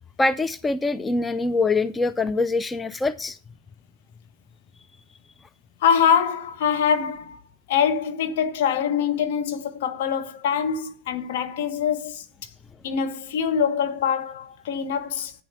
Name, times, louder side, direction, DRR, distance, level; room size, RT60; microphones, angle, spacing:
voice 1, 0.2-3.4, left 3 dB, 15° left, 0.4 m, -24 dB
voice 2, 5.8-7.4 7.7-12.5 12.8-15.3, left 7 dB, 55° left, 1.3 m, -24 dB
8.8 x 7.3 x 6.8 m
figure-of-eight pair, 90°, 0 cm